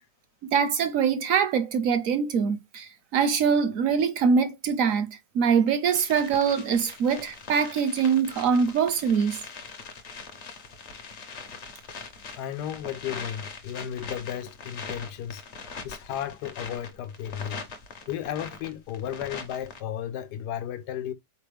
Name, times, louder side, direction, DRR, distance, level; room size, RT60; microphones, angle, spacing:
voice 1, 0.5-9.4, right 6 dB, 70° right, 0.9 m, -23 dB
sound 1, 5.9-19.8, left 4 dB, 50° left, 0.9 m, -42 dB
voice 2, 12.4-15.4 15.8-17.6 18.1-21.1, left 10 dB, 90° left, 1.2 m, -34 dB
4.3 x 3.4 x 3.3 m
omnidirectional pair, 1.7 m